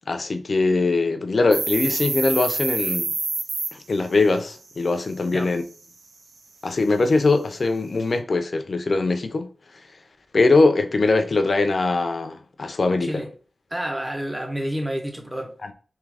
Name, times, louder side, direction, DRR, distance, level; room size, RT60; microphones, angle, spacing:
voice 1, 0.1-3.1 3.7-5.6 6.6-9.5 10.3-13.2, left 3 dB, 55° left, 0.5 m, -21 dB
sound 1, 1.5-3.7, right 4 dB, 75° right, 0.5 m, -26 dB
voice 2, 13.0-13.3 13.7-15.6, equal, 10° right, 0.6 m, -29 dB
3.6 x 2.8 x 3.3 m
wide cardioid pair, 120°, 0 cm